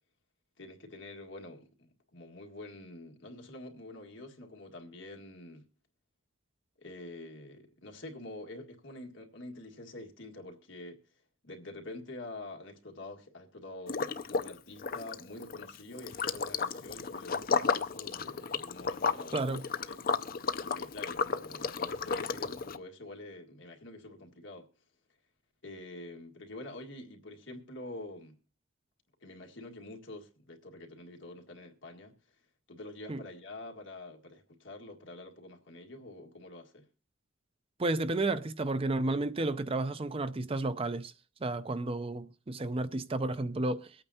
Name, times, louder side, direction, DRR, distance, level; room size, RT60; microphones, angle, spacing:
voice 1, 0.6-5.7 6.8-11.0 11.4-19.6 19.9-20.0 20.7-24.7 25.6-28.4 29.2-32.1 32.7-36.9, left 2 dB, 60° left, 1.8 m, -46 dB
Liquid, 13.9-14.5 14.8-22.8, left 5 dB, 45° left, 0.5 m, -33 dB
voice 2, 37.8-41.1 41.4-43.9, right 2 dB, 30° right, 0.5 m, -32 dB
23.0 x 8.8 x 2.8 m
head